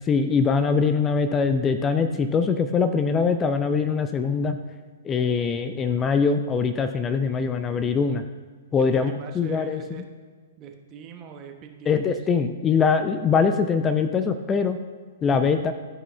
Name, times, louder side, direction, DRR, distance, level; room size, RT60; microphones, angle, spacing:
voice 1, 0.1-4.6 5.0-8.2 8.7-10.0 11.9-14.8 15.2-15.7, left 5 dB, 20° left, 9 dB, 0.5 m, -22 dB
voice 2, 8.8-10.0 10.6-12.1, right 7 dB, 35° right, 5 dB, 1.0 m, -42 dB
13.5 x 4.9 x 3.2 m, 1.5 s
hypercardioid pair, 115°, 0 cm